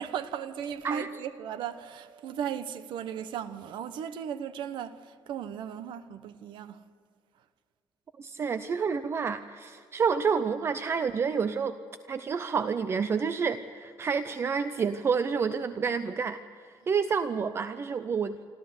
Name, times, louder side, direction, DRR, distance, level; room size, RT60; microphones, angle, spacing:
voice 1, 0.0-6.8 16.8-16.9, right 9 dB, 75° right, 1.1 m, -37 dB
sound 1, 0.7-3.7, right 1 dB, 10° left, 1.8 m, -54 dB
voice 2, 8.2-11.8 12.1-18.3, right 6 dB, 30° right, 0.6 m, -29 dB
26.5 x 13.5 x 8.0 m
cardioid pair, 160°, 8 cm